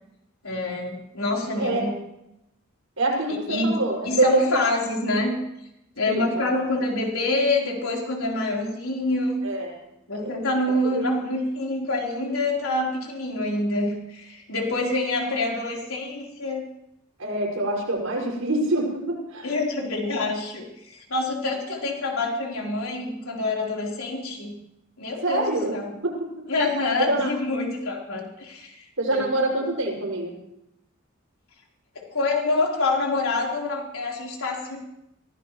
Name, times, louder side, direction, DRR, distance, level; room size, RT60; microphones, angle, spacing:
voice 1, 0.4-2.0 3.3-5.4 6.0-9.4 10.1-16.6 19.4-24.6 25.0-26.0 26.5-28.8 29.1-29.2 32.0-34.8, left 2 dB, 90° left, -1 dB, 3.9 m, -26 dB
voice 2, 3.0-4.6 6.1-6.6 9.4-9.8 10.1-10.3 10.9-11.1 17.2-19.5 25.2-25.7 26.0-26.3 27.0-27.3 29.0-30.3, right 2 dB, 85° right, -3 dB, 5.9 m, -25 dB
23.5 x 16.0 x 3.1 m, 0.84 s
head